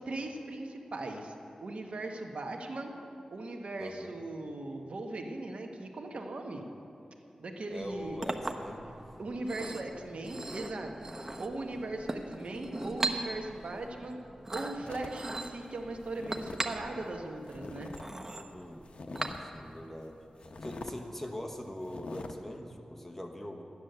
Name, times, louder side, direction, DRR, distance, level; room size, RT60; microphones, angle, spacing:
voice 1, 0.0-1.3 1.6-2.9 3.3-6.6 7.4-8.2 9.2-11.1 11.4-14.2 14.5-17.9, right 2 dB, 70° right, 3 dB, 1.1 m, -39 dB
voice 2, 3.8-4.1 7.7-8.9 9.6-10.0 11.7-11.9 18.5-18.8 19.4-23.6, left 1 dB, 10° left, 2 dB, 1.1 m, -42 dB
Chink clink, 7.8-19.8, right 2 dB, 25° right, 0.8 m, -39 dB
sound 1, 14.9-18.1 18.3-19.6 20.0-20.1 20.4-21.0 21.4-21.5 21.8-22.3, left 3 dB, 65° left, 0.8 m, -45 dB
12.0 x 9.6 x 6.7 m, 2.8 s
wide cardioid pair, 105°, 2 cm